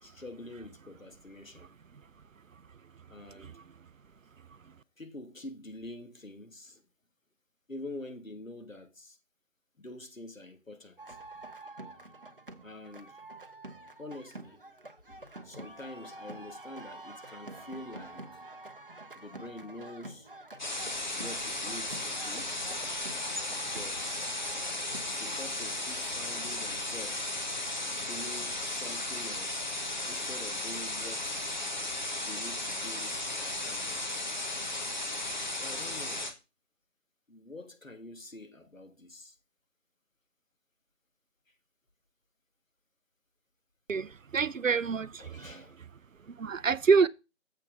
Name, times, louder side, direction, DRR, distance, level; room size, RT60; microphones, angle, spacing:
voice 1, 0.0-1.7 3.1-3.6 5.0-6.8 7.7-9.2 9.8-11.2 12.6-13.2 14.0-14.6 15.1-15.2 15.4-18.4 19.2-20.3 21.1-22.5 23.6-24.3 25.2-27.3 28.0-29.7 30.1-31.6 32.3-33.9 35.5-36.3 37.3-39.4 45.2-45.8, left 2 dB, 80° left, 1.8 m, -46 dB
sound 1, 11.0-25.5, right 2 dB, 45° right, 0.8 m, -47 dB
sound 2, 20.6-36.3, left 2 dB, 35° left, 1.1 m, -35 dB
voice 2, 44.3-45.1 46.4-47.1, right 5 dB, 80° right, 0.6 m, -25 dB
7.4 x 7.1 x 3.8 m
figure-of-eight pair, 160°, 39 cm